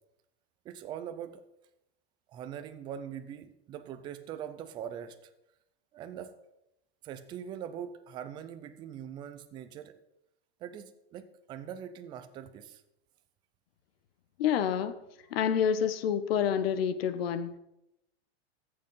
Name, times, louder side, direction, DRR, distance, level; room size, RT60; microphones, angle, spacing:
voice 1, 0.6-1.4 2.3-5.2 5.9-6.4 7.0-10.0 10.6-12.8, right 9 dB, 15° right, 9 dB, 0.4 m, -42 dB
voice 2, 14.4-15.0 15.3-17.5, left 8 dB, 60° left, 13 dB, 1.1 m, -28 dB
14.5 x 6.7 x 5.6 m, 0.85 s
supercardioid pair, 160°, 34 cm